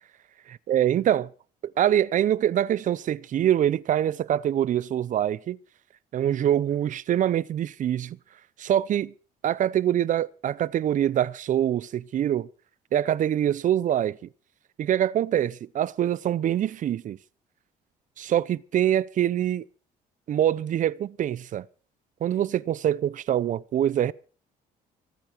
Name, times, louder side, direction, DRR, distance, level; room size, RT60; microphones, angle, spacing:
voice 1, 0.7-1.3 1.6-5.6 6.1-8.2 8.6-9.1 9.4-12.5 12.9-14.2 14.8-17.2 18.2-19.6 20.3-21.6 22.2-24.1, right 11 dB, 50° right, 0.6 m, -24 dB
24.5 x 8.7 x 4.5 m
cardioid pair, 110°, 17 cm